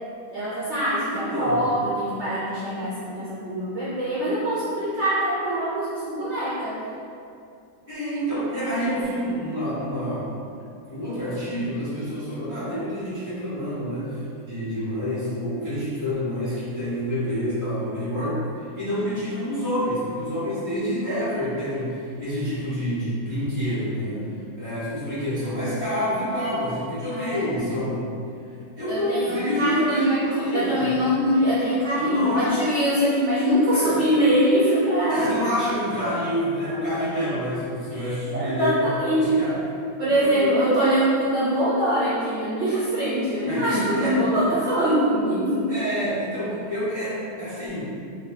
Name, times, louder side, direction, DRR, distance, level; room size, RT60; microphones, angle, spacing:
voice 1, 0.3-6.8 27.1-28.0 28.9-35.3 37.9-39.4 40.0-45.7, equal, 65° right, -9 dB, 0.7 m, -23 dB
voice 2, 1.0-1.7 7.9-10.3 10.9-24.2 24.6-28.0 28.8-30.9 32.0-32.6 33.7-34.0 35.1-39.5 40.2-40.8 43.4-44.2 45.7-47.8, equal, 15° left, -13 dB, 0.7 m, -28 dB
2.5 x 2.1 x 3.4 m, 2.5 s
omnidirectional pair, 1.6 m